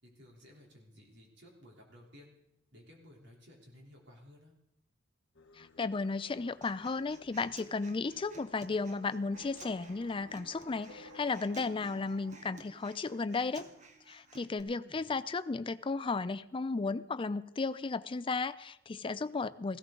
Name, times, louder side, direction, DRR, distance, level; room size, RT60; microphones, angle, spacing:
voice 1, 0.0-2.4 2.7-4.6 14.8-15.1, left 1 dB, 65° right, -1 dB, 3.5 m, -56 dB
Singing, 5.3-12.1, left 3 dB, 80° left, 1.0 m, -59 dB
voice 2, 5.6-13.7 14.1-19.8, left 4 dB, 30° left, 14 dB, 0.4 m, -34 dB
Human voice, 6.6-14.6, right 2 dB, 40° right, 1.3 m, -55 dB
sound 1, 9.3-15.6, right 3 dB, 90° right, 1.3 m, -57 dB
17.5 x 15.5 x 3.8 m, 0.81 s
head